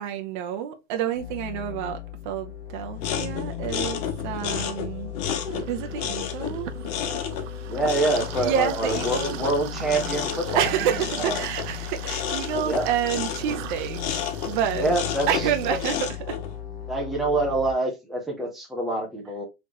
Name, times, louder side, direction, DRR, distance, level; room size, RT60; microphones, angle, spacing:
voice 1, 0.0-2.0 2.2-5.1 5.7-6.7 8.4-9.4 10.5-14.1 14.4-14.9 15.3-16.4, right 9 dB, 45° right, 0.7 m, -28 dB
sound 1, 1.2-17.7, left 11 dB, 55° left, 1.0 m, -37 dB
sound 2, 3.0-16.6, left 8 dB, 35° left, 0.7 m, -32 dB
sound 3, 5.5-16.1, right 11 dB, 85° right, 0.8 m, -40 dB
voice 2, 7.7-10.7 11.2-11.4 12.6-12.9 14.8-15.8 16.9-19.4, right 2 dB, ahead, 0.6 m, -26 dB
4.1 x 3.2 x 2.9 m
supercardioid pair, 165°, 37 cm